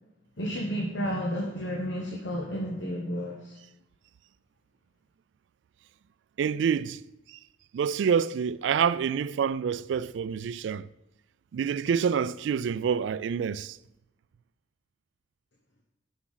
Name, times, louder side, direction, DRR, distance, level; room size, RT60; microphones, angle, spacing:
voice 1, 0.4-3.6, equal, 80° left, 1.1 m, -31 dB
voice 2, 6.4-7.0 7.3-7.4 7.7-10.9 11.5-13.8, right 7 dB, 80° right, 0.3 m, -27 dB
9.7 x 5.9 x 4.0 m
head